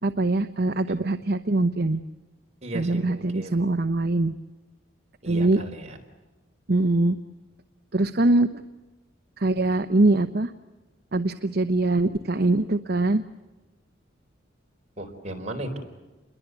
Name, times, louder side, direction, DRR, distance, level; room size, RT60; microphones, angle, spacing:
voice 1, 0.0-2.0 2.7-4.3 5.3-5.6 6.7-7.2 7.9-8.6 9.4-10.5 11.1-13.2, right 2 dB, 50° right, 9 dB, 0.9 m, -23 dB
voice 2, 2.6-3.6 5.2-6.0 15.0-15.8, right 1 dB, 35° right, 2 dB, 4.4 m, -35 dB
29.5 x 22.0 x 8.2 m, 1.2 s
head